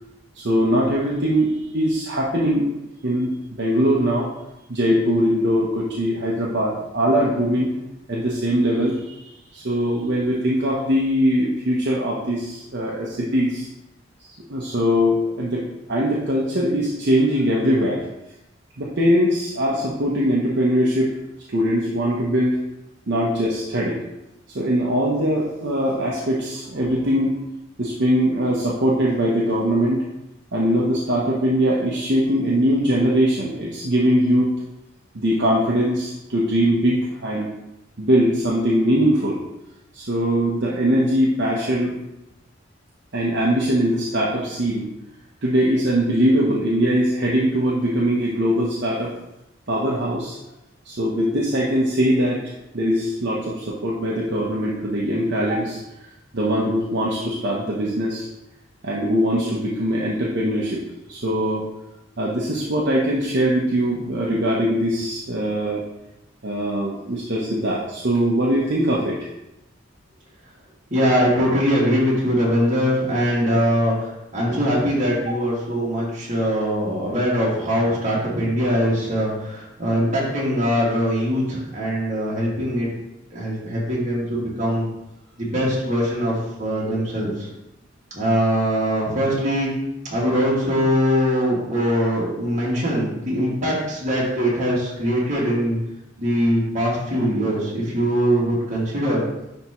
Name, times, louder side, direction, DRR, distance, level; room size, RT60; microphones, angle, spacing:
voice 1, 0.4-2.7 3.0-4.3 4.7-7.7 8.1-9.2 9.5-13.7 14.5-15.6 15.9-18.0 18.8-21.1 21.5-22.6 23.1-24.0 24.5-27.4 27.8-30.0 30.5-34.5 35.1-37.5 38.0-39.4 39.9-41.9 43.1-44.9 45.4-49.2 49.7-50.4 50.8-56.1 56.3-58.3 58.8-61.7 62.2-65.8 66.4-69.3, equal, 60° right, -5 dB, 0.9 m, -21 dB
voice 2, 70.9-82.9 83.3-84.9 85.4-87.5 88.1-89.7 90.1-95.8 96.2-99.2, equal, 40° right, -6 dB, 2.0 m, -22 dB
9.9 x 3.5 x 3.0 m, 0.91 s
head